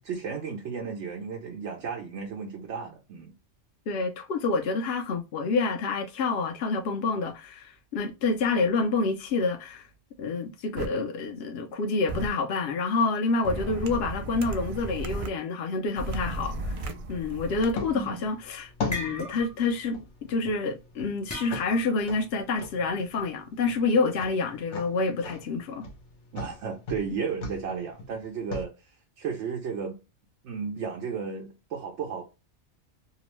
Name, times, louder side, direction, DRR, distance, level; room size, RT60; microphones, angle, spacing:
voice 1, 0.0-3.3 17.9-18.2 26.3-28.7 29.2-30.0 30.4-32.3, right 6 dB, 80° right, 1.0 m, -34 dB
voice 2, 3.9-9.9 10.2-16.7 17.1-20.0 20.3-25.8, left 3 dB, 65° left, 0.8 m, -28 dB
sound 1, 10.8-10.9 12.1-12.3 13.4-15.3 16.0-17.7, right 2 dB, 65° right, 0.3 m, -34 dB
sound 2, 17.7-28.7, left 3 dB, 90° left, 1.1 m, -40 dB
sound 3, 18.0-18.3 18.7-19.7 20.0-20.3 21.3-22.0, left 2 dB, 25° left, 0.4 m, -37 dB
2.8 x 2.0 x 3.0 m
omnidirectional pair, 1.2 m